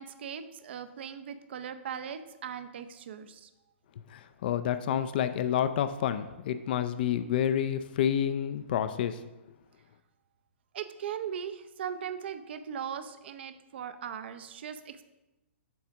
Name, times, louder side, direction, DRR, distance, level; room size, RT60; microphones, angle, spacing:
voice 1, 0.0-3.5 10.7-15.0, right 8 dB, 60° right, 10 dB, 0.6 m, -39 dB
voice 2, 4.1-9.2, left 9 dB, 50° left, 11 dB, 0.4 m, -29 dB
7.1 x 3.4 x 5.8 m, 1.0 s
hypercardioid pair, 155°, 7 cm